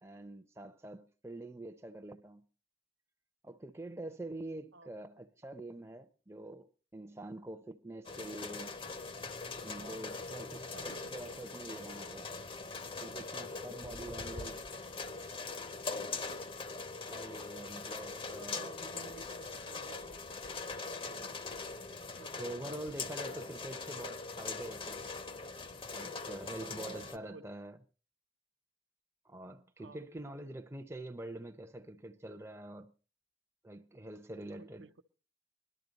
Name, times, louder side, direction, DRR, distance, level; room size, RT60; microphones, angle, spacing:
voice 1, 0.0-2.5 3.4-6.7 6.9-8.8 9.6-12.5 13.0-14.6 17.1-18.7 21.2-21.4 22.4-25.1 25.9-27.8 29.2-32.9 33.6-34.9, right 1 dB, 15° right, 0.6 m, -45 dB
sound 1, 8.1-27.2, left 4 dB, 25° left, 0.7 m, -42 dB
voice 2, 10.7-11.1 18.5-20.0 22.2-23.0 26.6-27.4 29.8-30.0 34.4-35.0, right 3 dB, 70° right, 0.7 m, -53 dB
21.0 x 12.0 x 4.0 m
head